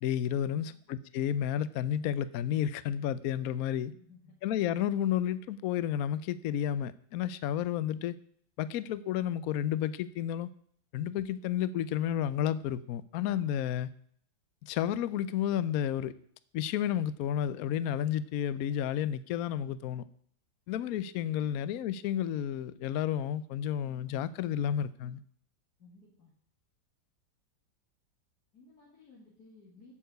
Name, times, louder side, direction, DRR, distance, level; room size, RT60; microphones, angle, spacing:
voice 1, 0.0-3.9 4.4-8.1 8.6-10.5 10.9-13.9 14.6-16.1 16.5-20.0 20.7-25.2, left 10 dB, 80° left, 16 dB, 0.8 m, -31 dB
voice 2, 3.9-4.3 25.8-26.3 28.5-29.9, left 3 dB, 50° left, -5 dB, 2.7 m, -57 dB
8.6 x 7.4 x 8.1 m, 0.64 s
omnidirectional pair, 2.2 m